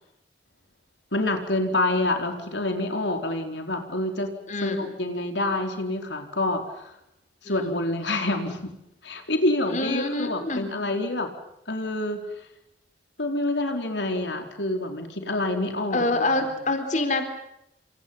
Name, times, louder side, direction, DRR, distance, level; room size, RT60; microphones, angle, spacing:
voice 1, 1.1-4.3 4.6-6.9 7.4-8.7 9.0-11.3 11.7-12.2 13.2-16.3, left 2 dB, 90° left, 4 dB, 4.5 m, -27 dB
voice 2, 4.5-4.9 7.5-7.8 9.7-10.7 15.9-17.2, left 2 dB, 45° left, 7 dB, 4.1 m, -26 dB
28.5 x 27.5 x 5.6 m, 0.82 s
head